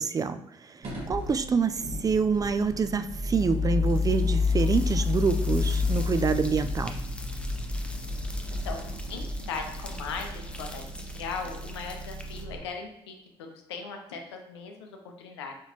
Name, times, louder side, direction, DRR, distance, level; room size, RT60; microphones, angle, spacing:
voice 1, 0.0-7.0, right 5 dB, 25° right, 10 dB, 0.3 m, -27 dB
sound 1, 0.8-12.6, left 4 dB, 50° right, 1.4 m, -30 dB
sound 2, 0.9-1.2 1.5-12.5, left 1 dB, 10° left, 0.7 m, -47 dB
voice 2, 8.6-10.3 10.6-10.8 11.1-15.5, left 5 dB, 85° left, 3 dB, 0.6 m, -38 dB
4.6 x 3.9 x 2.9 m, 0.84 s
hypercardioid pair, 45°, 14 cm